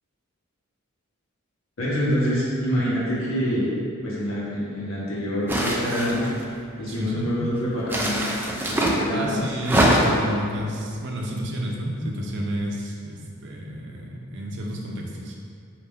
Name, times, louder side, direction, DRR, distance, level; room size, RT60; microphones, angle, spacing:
voice 1, 1.8-3.7 4.0-6.3 6.8-8.2 8.7-9.5 9.9-10.0, equal, 75° left, -7 dB, 1.0 m, -26 dB
sound 1, 5.5-6.4 7.9-9.0 9.6-10.3, right 1 dB, 10° right, 0.4 m, -22 dB
voice 2, 6.9-7.3 9.1-15.4, equal, 60° right, -1 dB, 0.6 m, -31 dB
4.2 x 2.5 x 3.5 m, 2.3 s
head